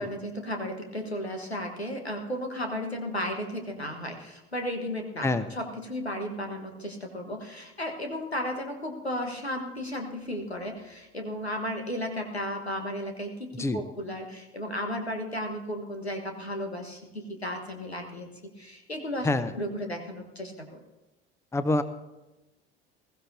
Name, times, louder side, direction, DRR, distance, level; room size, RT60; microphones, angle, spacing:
voice 1, 0.0-18.3 18.6-20.8, equal, 90° left, 4 dB, 1.5 m, -34 dB
voice 2, 21.5-21.8, left 2 dB, 10° left, 13 dB, 0.8 m, -25 dB
21.0 x 14.5 x 2.8 m, 1.0 s
figure-of-eight pair, 65°, 31 cm